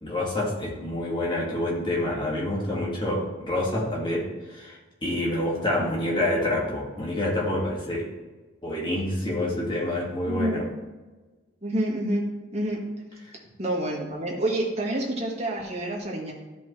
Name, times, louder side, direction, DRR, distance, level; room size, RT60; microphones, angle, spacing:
voice 1, 0.0-8.1 8.6-10.7 13.3-13.4, left 1 dB, 25° left, -4 dB, 2.1 m, -27 dB
voice 2, 10.3-10.7 11.6-12.3 12.5-12.8 13.6-16.3, right 1 dB, 35° right, -3 dB, 1.9 m, -28 dB
12.5 x 5.3 x 3.3 m, 1.2 s
head